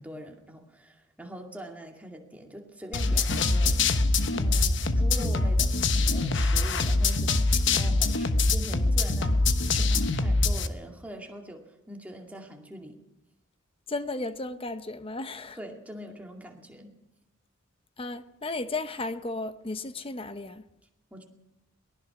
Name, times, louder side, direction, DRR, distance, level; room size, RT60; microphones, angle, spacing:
voice 1, 0.0-3.9 4.3-5.7 6.0-13.0 15.6-16.9 21.1-21.2, equal, 5° right, 2.3 m, -43 dB
sound 1, 2.9-10.7, left 3 dB, 60° left, 1.1 m, -24 dB
voice 2, 13.9-15.6 18.0-20.7, left 2 dB, 25° left, 0.8 m, -34 dB
22.5 x 19.0 x 6.0 m
head